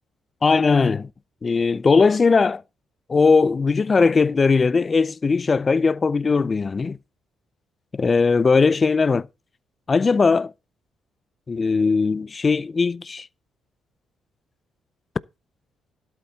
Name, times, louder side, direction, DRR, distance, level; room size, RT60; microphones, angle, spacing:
voice 1, 0.4-1.1 1.4-2.6 3.1-7.0 7.9-9.3 9.9-10.5 11.5-13.3, left 4 dB, 35° left, 0.5 m, -19 dB
12.0 x 8.0 x 4.1 m
cardioid pair, 90°, 0 cm